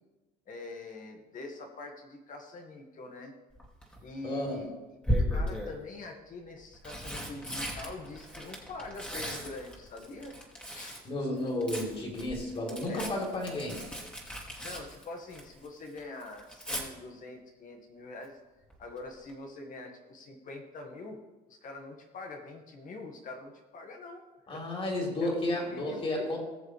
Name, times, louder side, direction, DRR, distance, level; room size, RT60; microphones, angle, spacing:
voice 1, 0.5-3.3 4.0-4.7 5.3-10.3 10.7-11.0 12.9-13.1 14.6-18.4 18.8-21.2 21.5-24.2 24.5-24.7 25.2-25.3 25.7-26.3, left 2 dB, 50° left, 2 dB, 1.9 m, -44 dB
Tearing, 3.5-4.0 5.0-5.8 6.6-11.1 11.4-15.7 16.0-16.8 18.7-19.0 19.3-19.4, equal, 5° left, 2.4 m, -36 dB
voice 2, 4.2-4.6 11.0-13.8 24.5-26.4, left 1 dB, 35° left, -2 dB, 3.8 m, -32 dB
19.0 x 7.0 x 3.4 m, 1.1 s
cardioid pair, 110°, 17 cm